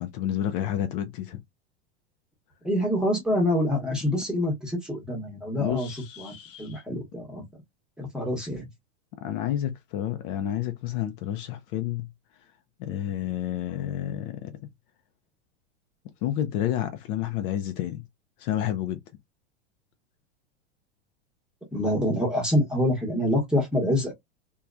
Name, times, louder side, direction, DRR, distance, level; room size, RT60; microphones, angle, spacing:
voice 1, 0.0-1.4 5.6-6.8 9.2-12.1 12.8-14.5 16.2-18.0 18.4-19.0, left 11 dB, 50° left, 0.6 m, -30 dB
voice 2, 2.6-7.4 8.0-8.7 21.7-24.1, left 1 dB, ahead, 1.1 m, -26 dB
2.8 x 2.3 x 2.4 m
supercardioid pair, 135°, 34 cm